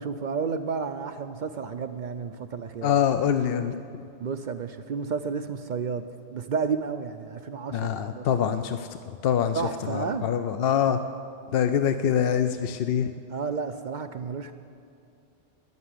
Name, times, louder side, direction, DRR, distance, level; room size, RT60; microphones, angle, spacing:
voice 1, 0.0-2.9 4.2-6.0 6.3-8.3 9.6-10.3 13.3-14.5, right 5 dB, 55° right, 10 dB, 0.5 m, -31 dB
voice 2, 2.8-3.8 7.7-8.9 9.2-9.6 9.9-11.0 11.5-13.1, left 8 dB, 65° left, 9 dB, 0.7 m, -24 dB
10.5 x 9.6 x 9.6 m, 2.5 s
omnidirectional pair, 1.2 m